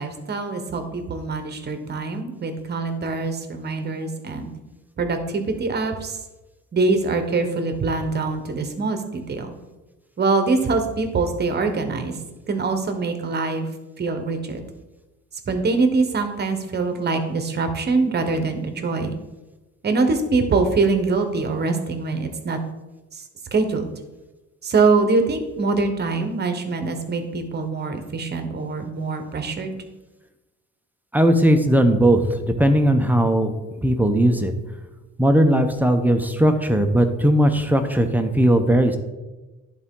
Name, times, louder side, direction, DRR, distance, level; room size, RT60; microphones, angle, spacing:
voice 1, 0.0-4.5 5.0-6.2 6.7-9.5 10.2-12.2 12.5-13.7 14.0-14.6 15.5-19.2 19.8-22.6 23.1-23.2 23.5-23.9 24.6-29.8, right 3 dB, 35° right, 7 dB, 1.1 m, -23 dB
voice 2, 31.1-33.5 33.8-34.5 35.2-39.0, right 1 dB, 5° right, 6 dB, 0.6 m, -18 dB
10.5 x 4.1 x 3.7 m, 1.1 s
cardioid pair, 115°, 30 cm